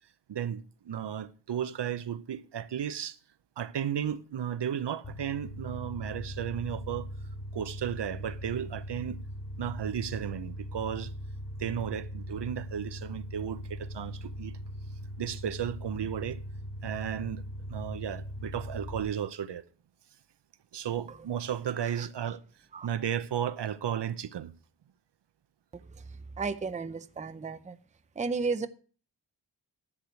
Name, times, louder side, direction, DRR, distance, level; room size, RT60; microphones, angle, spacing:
voice 1, 0.3-3.2 3.6-7.1 7.5-9.2 9.6-11.1 11.6-14.5 15.2-16.4 16.8-17.4 17.7-19.6 20.7-22.4 22.8-24.5, right 9 dB, 65° right, 0.7 m, -34 dB
sound 1, 5.0-19.0, equal, 50° left, 5.1 m, -40 dB
voice 2, 26.4-27.8 28.2-28.7, right 4 dB, 15° right, 0.5 m, -33 dB
11.0 x 4.8 x 8.1 m
wide cardioid pair, 140°, 44 cm